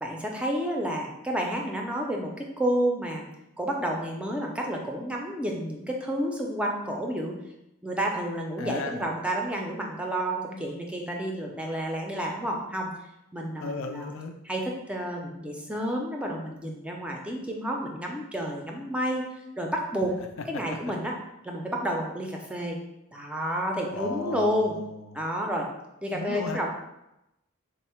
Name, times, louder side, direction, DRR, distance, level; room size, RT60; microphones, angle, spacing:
voice 1, 0.0-3.2 3.6-7.4 7.8-12.9 13.3-14.1 14.5-14.6 14.9-19.2 19.6-20.1 20.5-21.1 21.4-22.8 23.1-24.7 25.2-25.7 26.0-26.7, right 1 dB, 5° right, 0 dB, 0.4 m, -30 dB
voice 2, 8.6-9.0 13.6-14.4 20.5-20.6 23.9-25.2 26.1-26.7, left 4 dB, 70° left, 6 dB, 0.4 m, -35 dB
3.5 x 2.0 x 4.3 m, 0.88 s
head